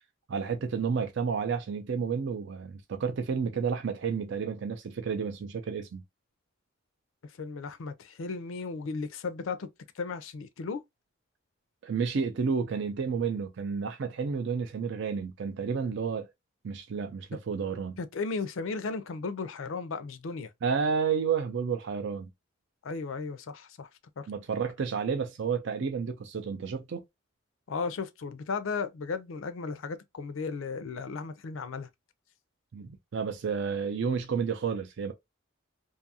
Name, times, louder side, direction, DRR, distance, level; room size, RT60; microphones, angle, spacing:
voice 1, 0.3-6.0 11.8-16.3 16.6-18.0 20.6-22.3 24.3-27.0 32.7-35.1, right 6 dB, 60° right, 0.4 m, -31 dB
voice 2, 7.4-9.7 9.9-10.8 18.0-20.5 22.8-23.9 24.2-24.3 27.7-31.9, left 4 dB, 75° left, 0.4 m, -35 dB
2.6 x 2.4 x 2.7 m
head